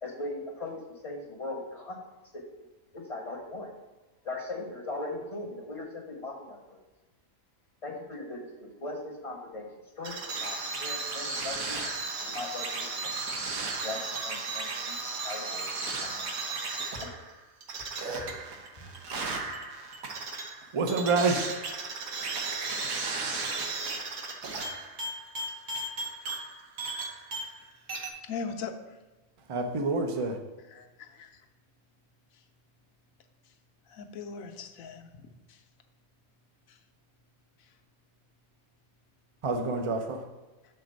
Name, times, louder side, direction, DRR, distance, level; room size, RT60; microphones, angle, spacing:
voice 1, 0.0-2.0 2.3-2.5 2.9-3.7 4.2-6.8 7.8-9.7 10.0-11.9 12.2-13.5 13.8-15.0 15.2-15.7 16.0-16.6 16.9-17.2 18.2-18.3 18.8-18.9, left 2 dB, 30° left, 0 dB, 0.8 m, -39 dB
sound 1, 10.0-27.6 27.9-28.1, right 3 dB, 70° right, 1.4 m, -35 dB
voice 2, 20.7-21.5 29.5-30.4 39.4-40.2, right 3 dB, 40° right, 5 dB, 0.4 m, -27 dB
voice 3, 28.2-29.0 30.7-31.4 33.9-35.6 36.7-36.8, left 5 dB, 75° left, 5 dB, 1.1 m, -40 dB
6.6 x 3.9 x 6.3 m, 1.1 s
omnidirectional pair, 1.5 m